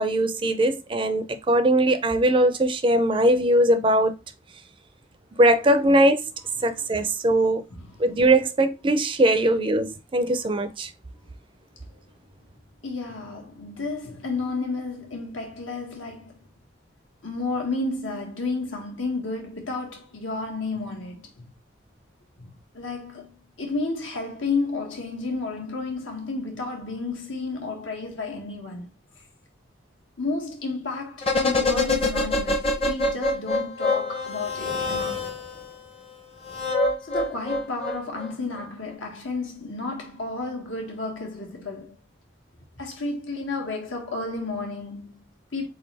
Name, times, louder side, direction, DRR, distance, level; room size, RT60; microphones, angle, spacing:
voice 1, 0.0-4.1 5.4-6.2 6.6-7.6 8.0-10.9, right 1 dB, 25° right, 0.4 m, -20 dB
voice 2, 12.8-16.4 17.2-21.5 22.4-23.3 23.6-28.9 30.2-35.3 37.0-41.9 42.8-45.7, left 3 dB, 85° left, 1.5 m, -32 dB
sound 1, 31.2-35.6 36.4-38.3 38.6-38.7, left 2 dB, 30° left, 0.7 m, -25 dB
4.0 x 4.0 x 3.3 m
head